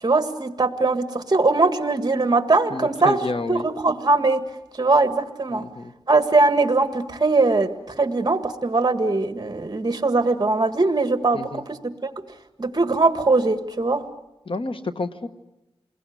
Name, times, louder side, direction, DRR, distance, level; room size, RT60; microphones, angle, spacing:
voice 1, 0.0-4.4 4.7-5.6 6.1-12.2 12.6-14.0, right 3 dB, 40° right, 9 dB, 1.8 m, -21 dB
voice 2, 2.7-3.7 5.5-5.9 11.3-11.6 14.5-15.3, left 3 dB, 60° left, 9 dB, 1.3 m, -29 dB
29.0 x 21.0 x 9.5 m, 0.99 s
wide cardioid pair, 90°, 10 cm